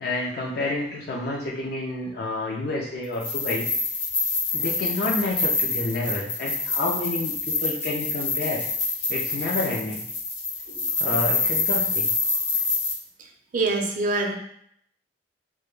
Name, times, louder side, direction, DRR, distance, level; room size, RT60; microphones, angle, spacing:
voice 1, 0.0-3.7 4.5-8.6 9.1-10.0 11.0-12.1, left 2 dB, 60° left, -3 dB, 0.4 m, -29 dB
sound 1, 3.1-12.9, left 3 dB, 85° left, 0.8 m, -26 dB
voice 2, 13.5-14.3, right 3 dB, 50° right, 2 dB, 0.4 m, -24 dB
2.1 x 2.1 x 3.0 m, 0.67 s
head